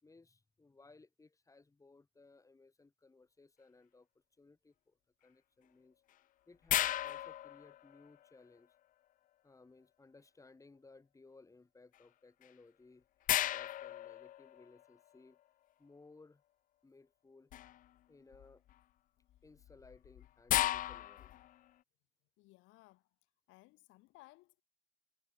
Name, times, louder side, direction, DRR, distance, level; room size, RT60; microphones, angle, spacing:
voice 1, 0.0-4.1 4.4-5.0 5.2-6.0 6.5-8.7 9.4-15.4 15.8-16.4 16.8-17.5 18.1-18.6 19.4-21.4, left 3 dB, 15° left, 4.6 m, -61 dB
sound 1, 6.7-8.3 12.4-12.5 13.3-14.9 17.5-17.9 18.3-18.7 19.6-21.6, left 13 dB, 45° left, 0.4 m, -35 dB
voice 2, 22.4-23.1 23.5-24.6, left 21 dB, 90° left, 6.1 m, -61 dB
cardioid pair, 120°, 19 cm